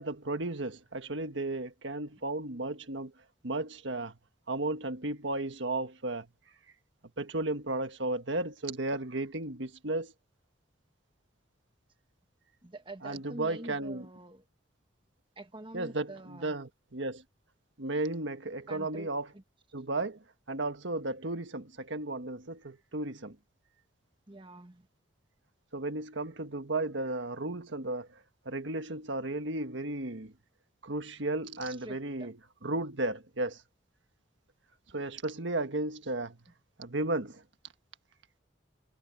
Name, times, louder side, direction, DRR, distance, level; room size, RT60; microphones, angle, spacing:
voice 1, 0.0-3.1 3.4-4.2 4.5-6.3 7.2-10.1 13.0-14.1 15.7-17.2 17.8-19.3 19.7-23.4 25.7-28.2 28.4-30.3 30.8-32.4 32.6-33.6 34.9-36.4 36.8-37.4, right 2 dB, 70° right, 1.5 m, -34 dB
voice 2, 12.6-14.4 15.4-16.6 18.7-19.4 24.3-24.9 31.6-32.3, right 2 dB, 25° right, 1.3 m, -46 dB
head